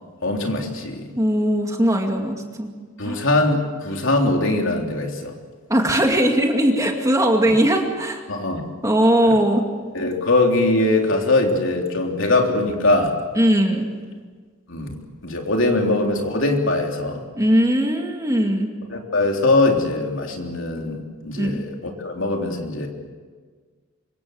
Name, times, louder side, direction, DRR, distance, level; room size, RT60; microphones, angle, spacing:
voice 1, 0.2-1.1 3.0-5.3 8.3-8.7 9.3-9.4 9.9-13.1 14.7-15.0 15.2-17.2 18.9-22.9, left 2 dB, 65° left, 2 dB, 3.5 m, -21 dB
voice 2, 1.2-2.7 3.0-3.2 5.7-8.2 8.8-9.6 13.4-13.9 17.4-18.7 21.4-21.5, equal, 15° right, 2 dB, 2.4 m, -19 dB
26.0 x 24.0 x 7.9 m, 1.5 s
head